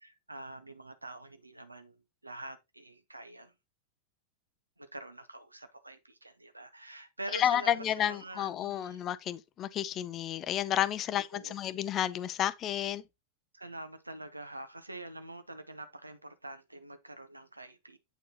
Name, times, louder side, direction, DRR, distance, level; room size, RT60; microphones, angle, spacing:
voice 1, 0.0-3.5 4.8-9.0 11.3-11.6 13.5-18.0, right 1 dB, 85° right, 0.6 m, -46 dB
voice 2, 7.3-13.0, left 11 dB, 30° left, 0.4 m, -31 dB
8.0 x 4.5 x 2.9 m
figure-of-eight pair, 90°, 0 cm